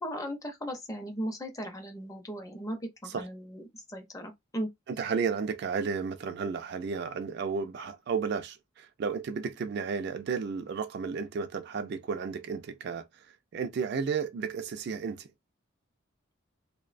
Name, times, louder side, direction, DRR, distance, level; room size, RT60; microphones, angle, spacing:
voice 1, 0.0-4.7, equal, 15° left, 0.5 m, -37 dB
voice 2, 4.9-13.3 13.5-15.3, right 5 dB, 55° right, 0.3 m, -33 dB
2.5 x 2.1 x 2.4 m
head